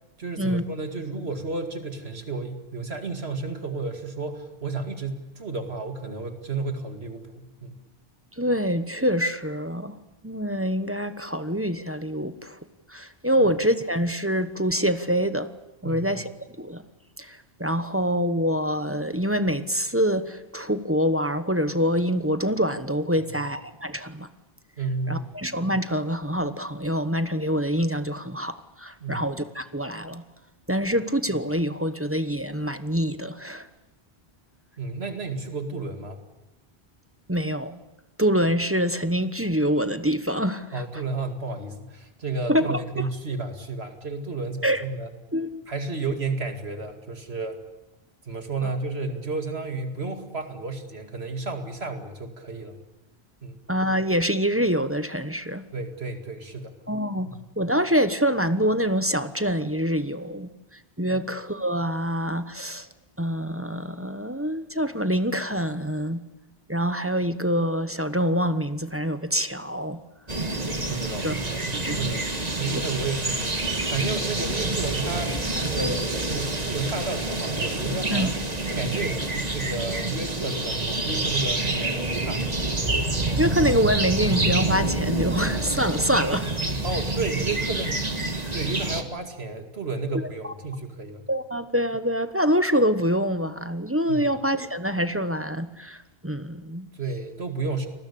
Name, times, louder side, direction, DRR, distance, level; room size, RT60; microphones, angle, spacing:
voice 1, 0.2-7.8 15.8-16.2 23.2-23.3 24.8-25.3 29.0-29.3 34.8-36.2 40.7-45.1 45.7-47.6 48.3-52.8 53.4-53.6 55.7-56.7 57.4-57.5 61.1-61.2 70.3-78.3 78.7-82.9 86.8-88.1 88.5-91.3 94.1-94.2 96.9-97.9, right 3 dB, 75° right, 2.5 m, -32 dB
voice 2, 8.4-10.0 10.2-12.6 12.9-15.5 15.8-16.3 16.6-16.8 17.2-24.3 25.1-30.2 30.7-33.7 37.3-37.8 38.2-40.8 42.5-42.8 44.6-44.8 45.3-45.6 48.6-48.8 53.7-55.6 56.9-57.3 57.6-60.5 61.0-62.9 63.2-66.3 66.7-70.0 71.2-71.3 71.7-72.0 78.1-78.3 83.4-86.5 90.4-90.5 91.3-96.9, equal, 15° right, 1.0 m, -25 dB
sound 1, 70.3-89.0, right 2 dB, 40° right, 2.0 m, -27 dB
29.5 x 20.5 x 8.6 m
omnidirectional pair, 1.1 m